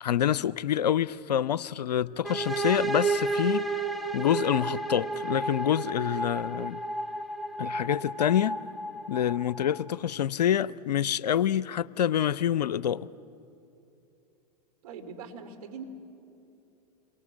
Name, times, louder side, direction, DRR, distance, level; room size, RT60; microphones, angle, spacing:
voice 1, 0.0-3.7 4.1-6.8 7.6-8.6 9.1-13.1, left 10 dB, 75° left, 0.6 m, -27 dB
sound 1, 2.2-9.9, right 3 dB, ahead, 1.0 m, -32 dB
voice 2, 14.8-15.8, right 5 dB, 65° right, 3.0 m, -42 dB
28.5 x 23.5 x 7.5 m
hypercardioid pair, 100°, 21 cm